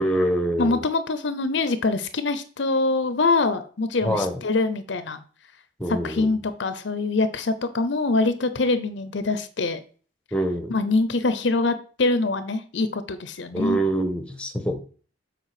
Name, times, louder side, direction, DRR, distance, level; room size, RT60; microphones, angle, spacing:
voice 1, 0.0-0.8 4.0-4.4 5.8-6.3 10.3-10.7 13.5-14.8, right 1 dB, 5° left, 5 dB, 1.1 m, -25 dB
voice 2, 0.6-5.2 6.0-9.8 10.7-13.8, left 3 dB, 65° left, 12 dB, 0.7 m, -24 dB
7.5 x 5.0 x 4.9 m, 0.41 s
head